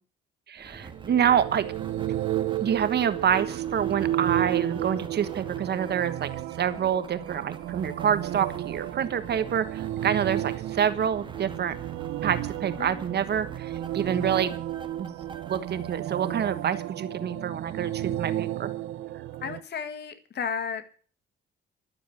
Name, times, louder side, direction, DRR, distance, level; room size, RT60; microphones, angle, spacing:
voice 1, 0.5-1.7 2.6-6.3 6.6-11.8 12.2-14.6 15.0-15.1 15.5-18.7, right 8 dB, 55° right, 12 dB, 1.3 m, -27 dB
sound 1, 0.6-17.1, right 4 dB, 25° right, 1.6 m, -46 dB
sound 2, 0.8-19.6, right 13 dB, 85° right, 0.6 m, -32 dB
voice 2, 12.8-13.1 19.4-20.8, left 6 dB, 60° left, 8 dB, 1.7 m, -33 dB
12.0 x 7.0 x 9.3 m, 0.43 s
cardioid pair, 90°, 20 cm